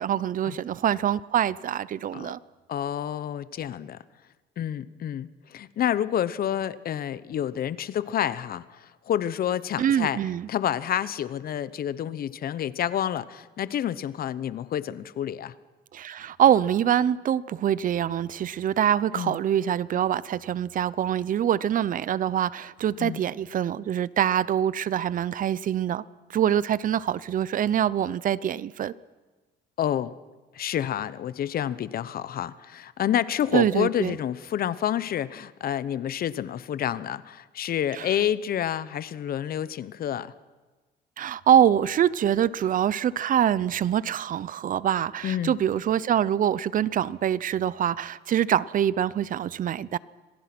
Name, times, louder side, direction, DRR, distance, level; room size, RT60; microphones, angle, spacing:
voice 1, 0.0-2.4 9.8-10.5 15.9-26.0 26.3-28.9 33.5-34.2 37.9-38.1 41.2-50.0, right 10 dB, 45° right, 0.6 m, -24 dB
voice 2, 2.7-4.0 4.6-10.2 10.5-15.5 19.1-19.4 23.0-23.2 29.8-30.1 30.5-40.3 45.2-45.6, left 10 dB, 50° left, 0.9 m, -29 dB
26.5 x 19.0 x 6.1 m
cardioid pair, 110°, 20 cm